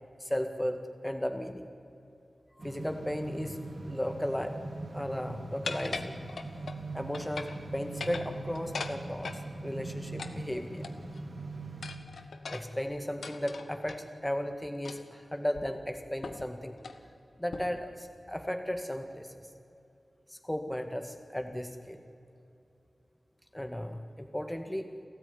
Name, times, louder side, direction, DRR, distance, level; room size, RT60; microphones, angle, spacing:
voice 1, 0.2-1.7 2.5-4.6 4.9-6.1 6.9-10.9 12.5-16.8 17.4-19.3 20.3-22.0 23.5-24.9, equal, 10° left, 6 dB, 1.9 m, -35 dB
sound 1, 2.6-11.9, right 2 dB, 55° right, 3.6 m, -41 dB
sound 2, 5.6-6.8 7.1-7.6 7.9-9.4 10.2-11.2 11.8-14.0 14.8-15.2 15.5-15.6 16.2-16.5 16.8-17.0 17.5-17.9, left 4 dB, 85° left, 1.4 m, -40 dB
29.0 x 14.0 x 9.9 m, 2.8 s
cardioid pair, 45°, 0 cm